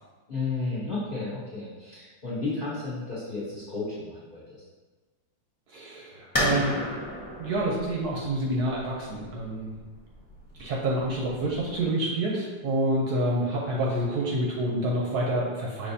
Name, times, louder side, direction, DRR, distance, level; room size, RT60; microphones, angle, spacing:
voice 1, 0.3-4.4, left 3 dB, 45° left, -8 dB, 0.7 m, -32 dB
voice 2, 5.7-6.8 7.4-9.7 10.5-15.9, right 1 dB, 65° right, -3 dB, 1.0 m, -28 dB
sound 1, 6.3-11.8, left 1 dB, 15° left, 0.9 m, -33 dB
5.5 x 3.2 x 2.7 m, 1.3 s
omnidirectional pair, 2.1 m